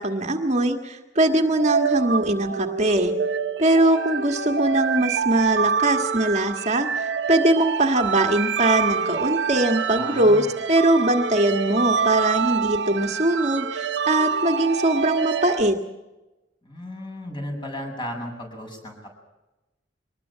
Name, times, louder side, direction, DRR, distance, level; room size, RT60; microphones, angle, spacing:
voice 1, 0.0-3.1 3.6-15.8, right 1 dB, 40° right, 5 dB, 1.6 m, -21 dB
sound 1, 1.2-15.6, right 6 dB, 80° right, 0.9 m, -26 dB
voice 2, 9.9-10.5 16.6-19.1, left 1 dB, 25° left, 2 dB, 7.3 m, -35 dB
23.5 x 20.0 x 7.4 m, 1.0 s
head